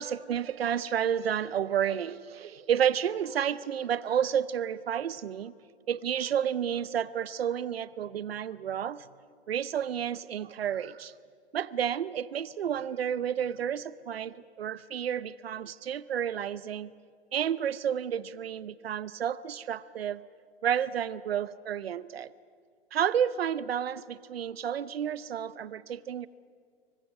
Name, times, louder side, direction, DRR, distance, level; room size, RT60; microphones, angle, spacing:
voice 1, 0.0-5.5 5.9-9.1 9.5-11.1 11.5-16.9 17.3-20.2 20.6-22.3 22.9-26.3, right 9 dB, 75° right, 18 dB, 0.8 m, -31 dB
28.0 x 24.5 x 5.4 m, 2.1 s
figure-of-eight pair, 110°, 31 cm